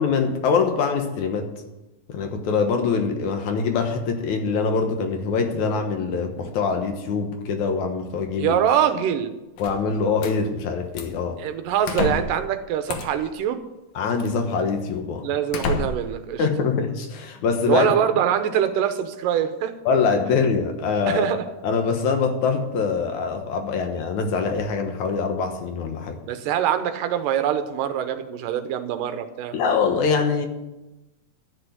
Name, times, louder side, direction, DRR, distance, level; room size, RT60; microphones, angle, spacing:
voice 1, 0.0-1.5 2.1-8.6 9.6-11.4 14.0-15.3 16.4-17.9 19.9-21.2 21.6-26.2 29.5-30.5, left 5 dB, 65° left, 5 dB, 2.4 m, -24 dB
voice 2, 8.4-9.3 11.4-13.6 15.2-16.4 17.7-19.7 21.1-21.4 26.3-29.6, right 9 dB, 75° right, 9 dB, 2.4 m, -24 dB
sound 1, 9.6-10.4 10.9-11.3 11.9-12.4 12.9-13.3 14.2-14.3 14.9-15.0 15.5-16.2, left 4 dB, 85° left, 2.9 m, -29 dB
13.0 x 6.7 x 9.3 m, 1.0 s
omnidirectional pair, 4.0 m